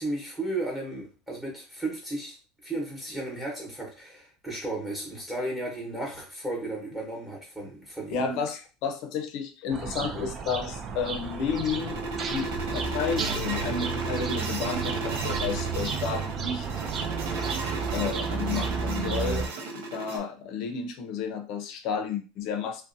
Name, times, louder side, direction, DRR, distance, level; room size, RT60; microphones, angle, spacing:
voice 1, 0.0-2.3 2.6-8.2, right 2 dB, 10° right, -3 dB, 1.0 m, -34 dB
voice 2, 8.1-12.0 12.3-16.7 17.9-19.4 19.7-22.9, left 6 dB, 55° left, 6 dB, 0.5 m, -32 dB
sound 1, 9.7-19.5, right 6 dB, 35° right, 0.3 m, -32 dB
sound 2, 10.8-20.2, right 3 dB, 80° right, 0.6 m, -34 dB
2.6 x 2.2 x 2.5 m, 0.34 s
supercardioid pair, 135°, 0 cm